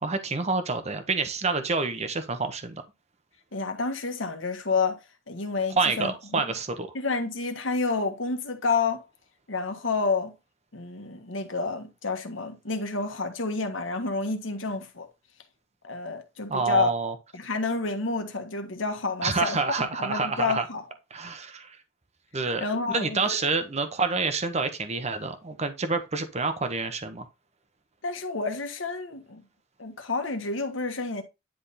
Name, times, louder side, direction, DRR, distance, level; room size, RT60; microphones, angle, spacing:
voice 1, 0.0-2.8 5.8-6.9 16.5-17.1 19.2-20.6 21.1-21.8 22.3-27.3, right 4 dB, 35° right, 1.0 m, -28 dB
voice 2, 3.5-5.0 5.3-6.1 6.9-9.0 9.5-10.3 10.7-15.1 15.8-16.9 17.3-20.8 22.6-23.4 28.0-29.4 29.8-31.2, left 4 dB, 90° left, 1.5 m, -29 dB
10.0 x 3.6 x 4.1 m
head